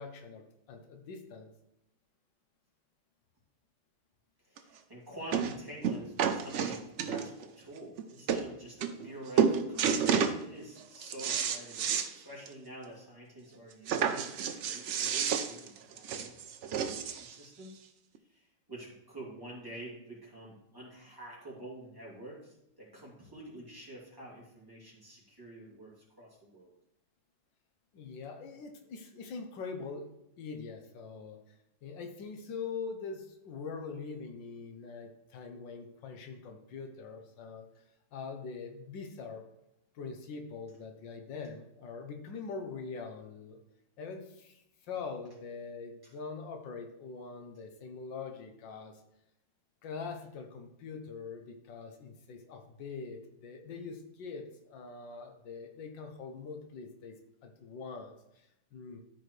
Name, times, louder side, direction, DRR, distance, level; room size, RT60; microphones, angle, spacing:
voice 1, 0.0-1.5 27.9-30.1 30.4-31.5 31.8-37.7 38.1-39.5 39.9-43.6 44.0-49.0 49.8-57.2 57.4-59.0, left 5 dB, 80° left, 5 dB, 1.6 m, -43 dB
voice 2, 4.4-11.8 12.1-16.3 16.7-17.8 18.3-26.7 46.0-46.1, right 1 dB, 10° right, -6 dB, 2.8 m, -48 dB
sound 1, 4.6-4.7 5.3-5.6 5.8-7.4 8.0-8.1 8.3-8.4 8.8-9.1 9.4-10.4 10.8-12.1 12.5-12.6 12.9-13.0 13.9-17.3 18.1-18.2, right 7 dB, 70° right, 0.6 m, -30 dB
13.0 x 4.7 x 3.2 m, 0.84 s
omnidirectional pair, 2.0 m